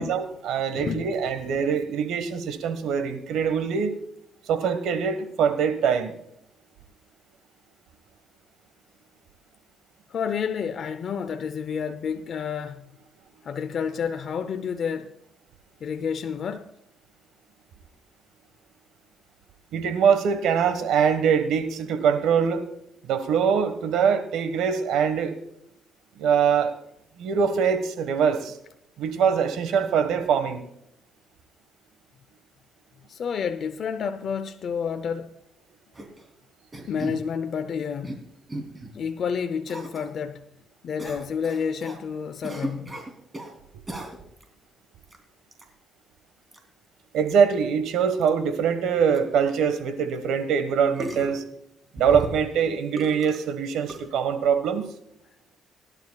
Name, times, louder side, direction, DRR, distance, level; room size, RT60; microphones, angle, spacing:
voice 1, 0.0-4.0 4.5-6.1 19.7-22.7 23.0-25.3 26.2-26.7 27.2-28.6 29.0-30.6 47.1-51.4 51.9-54.9, right 7 dB, 85° right, 1.4 m, -23 dB
voice 2, 0.7-1.1 10.1-12.8 13.4-15.1 15.8-16.7 33.1-35.4 36.9-38.2 38.9-40.4 40.8-42.9, left 6 dB, 60° left, 0.6 m, -30 dB
sound 1, 35.9-36.2 36.7-37.2 37.8-38.2 38.5-38.9 39.7-40.1 41.0-42.0 42.4-43.5 43.9-44.4 45.0-45.2 45.5-45.6 46.5-46.6 47.3-47.4 47.6-47.7 48.2-48.3 48.9-49.0 49.1-49.2 50.1-50.2 51.0-51.4 51.9-52.6 53.0-53.4 53.9-54.0, right 1 dB, 25° right, 3.1 m, -36 dB
22.5 x 11.5 x 2.3 m
cardioid pair, 90°, 0 cm